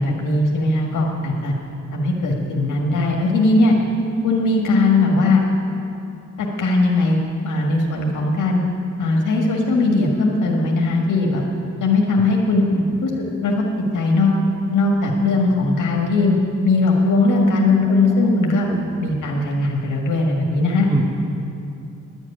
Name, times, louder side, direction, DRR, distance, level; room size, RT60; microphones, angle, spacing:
voice 1, 0.0-1.5 1.9-3.7 4.2-5.4 6.4-7.2 7.4-8.6 9.0-11.4 11.8-12.6 13.0-13.1 13.4-13.6 13.9-14.3 14.7-16.3 16.6-18.7 19.0-20.9, left 2 dB, 80° left, -1 dB, 1.7 m, -19 dB
voice 2, 17.9-18.2 18.7-19.0 20.9-21.0, right 2 dB, 15° right, -1 dB, 1.0 m, -26 dB
10.5 x 8.1 x 9.8 m, 2.6 s
cardioid pair, 115°, 31 cm